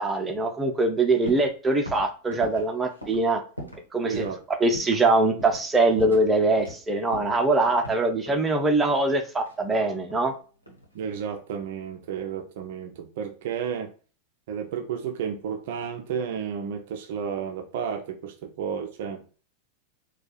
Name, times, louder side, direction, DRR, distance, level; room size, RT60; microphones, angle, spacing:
voice 1, 0.0-3.4 3.9-4.1 4.6-10.3, right 2 dB, 15° right, 3 dB, 0.7 m, -23 dB
sound 1, 1.3-1.6 1.9-3.9 4.1-4.4 4.7-5.1 5.4-5.7 6.0-6.8 7.1-8.5 9.4-10.3 10.6-11.1, equal, 90° left, 1.1 m, -41 dB
voice 2, 4.0-4.4 10.9-13.9 14.5-19.2, right 7 dB, 50° right, 6 dB, 0.5 m, -32 dB
4.4 x 2.4 x 4.2 m, 0.38 s
figure-of-eight pair, 90°, 0 cm